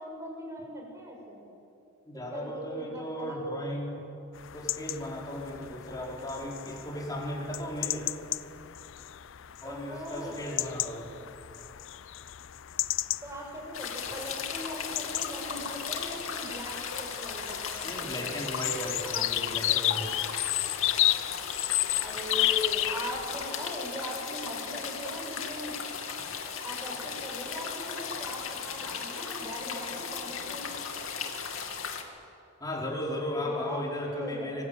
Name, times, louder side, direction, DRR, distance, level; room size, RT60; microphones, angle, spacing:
voice 1, 0.0-1.4 2.3-3.4 9.6-10.5 13.2-18.4 19.1-19.3 22.0-25.7 26.6-30.7 33.4-34.6, equal, 15° right, 0 dB, 7.1 m, -40 dB
voice 2, 2.1-4.1 4.5-8.1 9.6-11.1 17.8-20.1 32.6-34.6, left 1 dB, 20° left, -2 dB, 5.2 m, -36 dB
sound 1, 4.3-23.5, left 15 dB, 65° left, 0.6 m, -33 dB
sound 2, 13.7-32.0, left 6 dB, 85° left, 2.7 m, -36 dB
25.0 x 23.5 x 9.2 m, 2.7 s
head